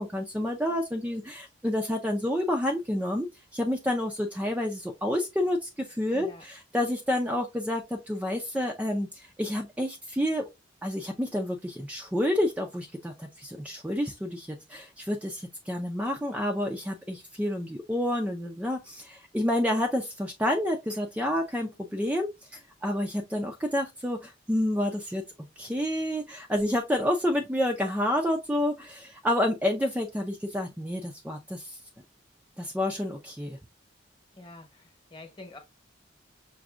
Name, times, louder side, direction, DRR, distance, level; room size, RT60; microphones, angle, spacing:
voice 1, 0.0-10.5 10.8-31.8 32.6-33.6, left 1 dB, 5° right, 0.4 m, -29 dB
voice 2, 6.1-6.4 34.3-35.6, left 2 dB, 25° left, 1.0 m, -46 dB
5.9 x 2.6 x 2.4 m
head